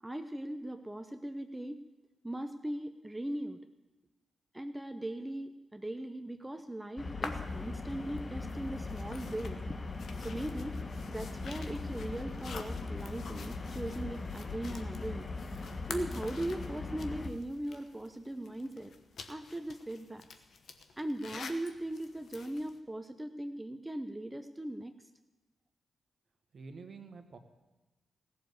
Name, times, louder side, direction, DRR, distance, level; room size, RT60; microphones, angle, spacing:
voice 1, 0.0-1.8 2.2-3.6 4.5-9.6 10.2-10.8 11.1-15.3 15.9-18.9 19.3-20.3 21.0-24.9, right 1 dB, 15° right, 8 dB, 0.9 m, -39 dB
sound 1, 7.0-17.3, left 3 dB, 40° left, 1.3 m, -40 dB
sound 2, 7.2-22.8, left 5 dB, 70° left, 1.0 m, -49 dB
voice 2, 26.5-27.4, right 4 dB, 60° right, 7 dB, 1.4 m, -48 dB
15.5 x 6.9 x 8.2 m, 1.1 s
supercardioid pair, 40°, 0 cm